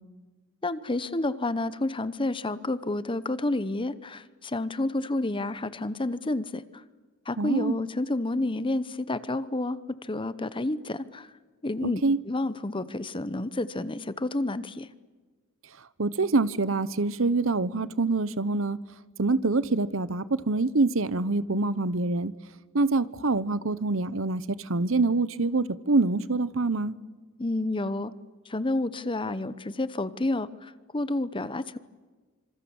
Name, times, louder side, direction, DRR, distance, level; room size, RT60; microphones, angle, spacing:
voice 1, 0.6-6.8 7.3-11.3 11.6-14.9 27.4-28.1 28.5-31.8, left 2 dB, 25° left, 0.9 m, -30 dB
voice 2, 7.4-7.8 11.8-12.2 16.0-18.8 19.2-22.3 22.7-26.9, right 3 dB, 65° right, 1.0 m, -25 dB
26.5 x 26.5 x 7.2 m
head